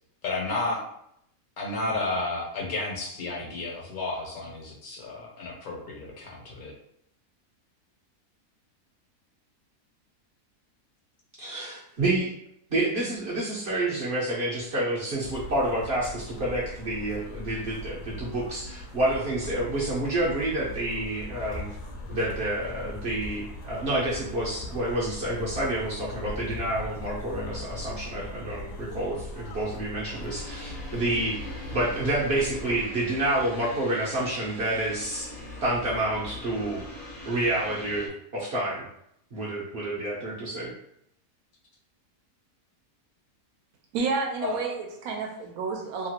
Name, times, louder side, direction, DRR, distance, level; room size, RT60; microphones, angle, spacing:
voice 1, 0.2-0.8 1.6-6.7 44.4-44.6, left 3 dB, 70° left, -2 dB, 1.3 m, -32 dB
voice 2, 11.4-12.3 12.7-21.7 22.1-36.8 37.3-38.8 39.3-40.7, right 1 dB, 55° right, -6 dB, 0.8 m, -29 dB
sound 1, 15.2-32.8, left 1 dB, 85° left, 1.2 m, -40 dB
sound 2, 21.2-31.0, left 1 dB, 10° right, 0.6 m, -46 dB
sound 3, 30.0-38.1, left 2 dB, 45° left, 0.8 m, -42 dB
voice 3, 43.9-46.1, right 4 dB, 75° right, 1 dB, 1.0 m, -30 dB
2.9 x 2.4 x 2.8 m, 0.73 s
omnidirectional pair, 1.7 m